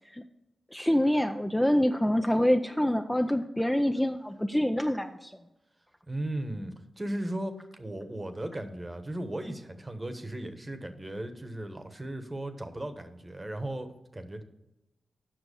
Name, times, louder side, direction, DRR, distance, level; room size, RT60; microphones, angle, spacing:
voice 1, 0.7-5.3, equal, 5° left, 5 dB, 0.5 m, -26 dB
voice 2, 6.1-13.9 14.1-14.4, right 1 dB, 25° right, 8 dB, 1.1 m, -36 dB
7.6 x 5.9 x 6.5 m, 0.92 s
cardioid pair, 70°, 0 cm